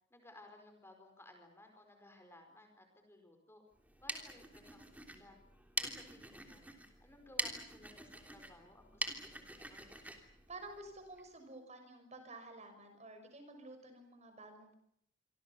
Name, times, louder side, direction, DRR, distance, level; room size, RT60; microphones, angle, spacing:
voice 1, 0.1-3.6 4.0-5.4 5.8-6.6 7.0-9.9, left 1 dB, 15° left, 5 dB, 4.6 m, -59 dB
sound 1, 3.8-11.3, right 2 dB, 10° right, 3.2 m, -44 dB
voice 2, 10.5-14.7, right 2 dB, 35° right, 7 dB, 6.2 m, -51 dB
27.0 x 25.0 x 7.0 m, 0.69 s
head